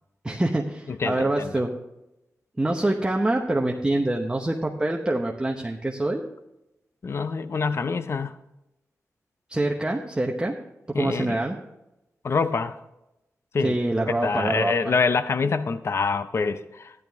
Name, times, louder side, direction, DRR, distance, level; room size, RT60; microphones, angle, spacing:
voice 1, 0.2-1.7 2.6-6.2 9.5-10.5 10.9-11.6 13.6-15.0, right 1 dB, 15° right, 0.9 m, -25 dB
voice 2, 1.0-1.5 7.0-8.3 10.9-11.4 12.2-12.8 13.5-13.8 14.2-16.9, left 4 dB, 50° left, 0.5 m, -25 dB
13.5 x 10.5 x 3.5 m
wide cardioid pair, 85°, 6 cm